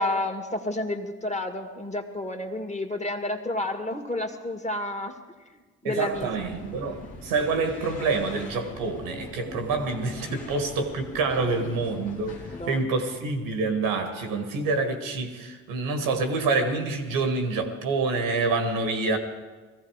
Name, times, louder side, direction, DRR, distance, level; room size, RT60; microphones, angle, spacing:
voice 1, 0.0-5.2 5.8-6.4 12.5-12.9, left 1 dB, 20° left, 2.0 m, -30 dB
voice 2, 5.8-12.4 12.7-19.2, right 3 dB, 85° right, 1.6 m, -27 dB
sound 1, 6.1-12.7, left 3 dB, 85° left, 1.5 m, -41 dB
19.0 x 15.0 x 4.9 m
hypercardioid pair, 45°, 33 cm